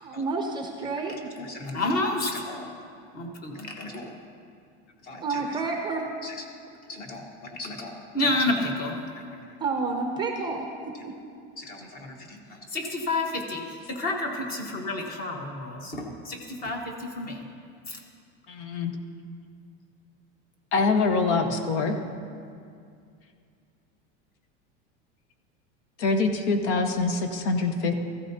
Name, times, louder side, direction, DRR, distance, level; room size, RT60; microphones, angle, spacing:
voice 1, 0.0-1.3 5.2-6.0 9.6-11.1, right 4 dB, 15° right, 2 dB, 0.5 m, -30 dB
voice 2, 1.4-2.7 3.1-4.1 5.0-5.5 6.2-6.3 6.9-9.6 11.6-17.5 17.9-18.0, left 2 dB, 25° left, 3 dB, 1.2 m, -31 dB
voice 3, 18.5-18.9 20.7-22.0 26.0-27.9, left 3 dB, 75° left, 5 dB, 1.2 m, -24 dB
15.5 x 15.0 x 2.8 m, 2.3 s
supercardioid pair, 170°, 35 cm